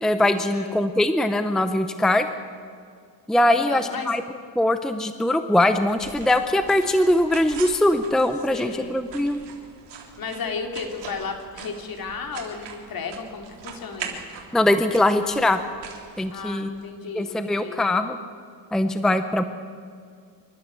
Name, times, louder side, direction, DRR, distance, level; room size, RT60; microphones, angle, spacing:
voice 1, 0.0-2.3 3.3-4.2 4.6-9.4 14.5-15.6 16.2-16.7 17.1-18.2 18.7-19.4, left 1 dB, ahead, 9 dB, 0.7 m, -21 dB
voice 2, 0.5-0.9 3.5-4.1 8.5-9.1 10.2-14.2 16.3-17.8, left 5 dB, 55° left, 4 dB, 2.8 m, -34 dB
sound 1, 5.5-16.9, right 6 dB, 75° right, 3.6 m, -42 dB
27.0 x 13.0 x 7.5 m, 2.2 s
cardioid pair, 150°, 43 cm